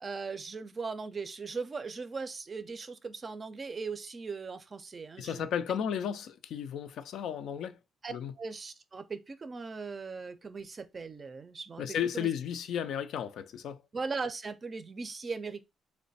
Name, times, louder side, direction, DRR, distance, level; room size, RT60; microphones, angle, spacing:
voice 1, 0.0-5.5 8.0-12.3 13.9-15.6, right 4 dB, 35° right, 0.4 m, -39 dB
voice 2, 5.2-7.8 8.1-8.3 11.8-13.8, left 8 dB, 80° left, 0.3 m, -34 dB
3.1 x 2.1 x 4.0 m
cardioid pair, 95°, 0 cm